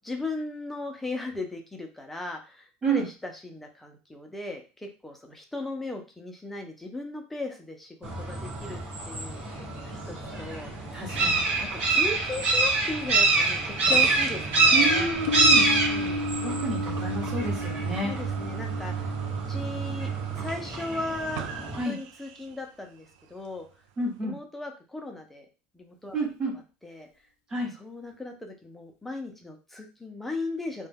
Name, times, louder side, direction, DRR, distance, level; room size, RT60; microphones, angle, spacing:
voice 1, 0.0-8.8 9.0-11.1 11.6-15.1 15.6-16.2 18.0-19.1 19.5-20.1 20.4-21.4 21.9-23.7 24.2-25.5 25.7-26.2 26.8-27.1 27.8-30.9, left 2 dB, 5° left, 3 dB, 0.4 m, -37 dB
sound 1, 8.0-21.8, right 3 dB, 45° right, 1.0 m, -26 dB
voice 2, 10.9-11.4 14.7-15.6 16.4-18.1 21.8-22.0 24.0-24.4 26.1-26.5 27.5-27.7, right 2 dB, 15° right, -1 dB, 0.9 m, -29 dB
sound 2, 13.9-22.6, right 9 dB, 90° right, 0.3 m, -35 dB
Piano, 15.3-20.6, left 2 dB, 80° left, 0.3 m, -34 dB
2.2 x 2.1 x 3.3 m, 0.32 s
cardioid pair, 165°, 4 cm